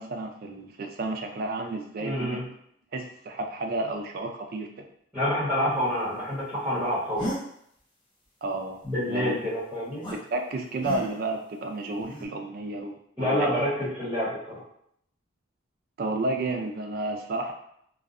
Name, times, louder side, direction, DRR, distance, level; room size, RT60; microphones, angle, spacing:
voice 1, 0.0-2.4 2.9-4.7 8.4-8.8 9.1-9.4 10.3-13.6 16.0-17.5, right 2 dB, 45° right, 4 dB, 0.3 m, -31 dB
voice 2, 2.0-2.4 5.1-7.2 8.8-10.0 13.2-14.4, left 1 dB, 10° right, -10 dB, 1.2 m, -27 dB
sound 1, 7.2-7.4 10.0-10.2 10.8-11.3 12.0-12.3, equal, 25° left, 0.5 m, -33 dB
2.6 x 2.1 x 2.4 m, 0.70 s
head